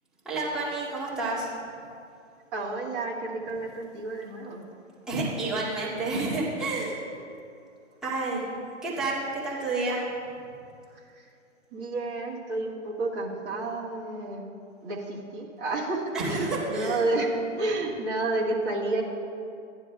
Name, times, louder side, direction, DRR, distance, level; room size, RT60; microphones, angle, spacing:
voice 1, 0.2-1.5 5.1-7.1 8.0-8.4 8.8-10.1 16.1-17.0, right 2 dB, ahead, -10 dB, 2.2 m, -29 dB
voice 2, 2.5-4.6 11.7-14.4 14.8-19.0, right 2 dB, 20° right, -4 dB, 1.5 m, -30 dB
15.5 x 10.5 x 2.3 m, 2.4 s
hypercardioid pair, 150°, 37 cm